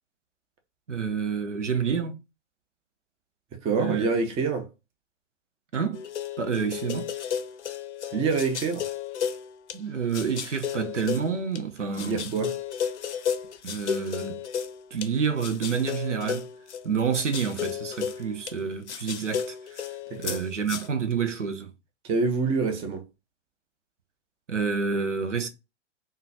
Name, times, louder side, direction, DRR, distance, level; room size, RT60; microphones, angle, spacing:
voice 1, 0.9-2.2 3.8-4.1 5.7-6.0 6.4-7.1 9.7-12.3 13.6-14.4 14.9-16.5 16.8-21.7 24.5-25.5, right 6 dB, 90° right, 0.6 m, -28 dB
voice 2, 3.6-4.7 8.1-8.9 12.0-12.5 20.1-20.4 22.1-23.0, right 4 dB, 15° right, 0.5 m, -26 dB
sound 1, 5.9-9.8 10.1-11.6 11.9-15.1 15.4-18.6 18.9-20.9, left 8 dB, 70° left, 0.6 m, -33 dB
3.6 x 2.2 x 2.7 m
figure-of-eight pair, 105°, 36 cm